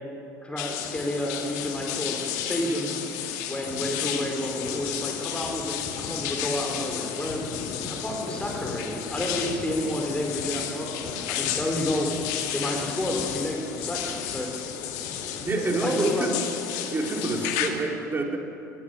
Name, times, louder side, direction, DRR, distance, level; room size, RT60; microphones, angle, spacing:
voice 1, 0.4-3.0 3.5-7.5 7.9-12.1 12.5-14.5 15.8-16.3, left 1 dB, 10° left, 1 dB, 4.2 m, -30 dB
sound 1, 0.6-17.7, left 10 dB, 65° left, 1.9 m, -33 dB
sound 2, 0.7-17.8, left 4 dB, 50° left, 2.6 m, -40 dB
voice 2, 15.5-16.4 16.9-18.4, right 2 dB, 20° right, 1 dB, 4.3 m, -27 dB
21.5 x 14.5 x 9.3 m, 2.6 s
figure-of-eight pair, 65°, 9 cm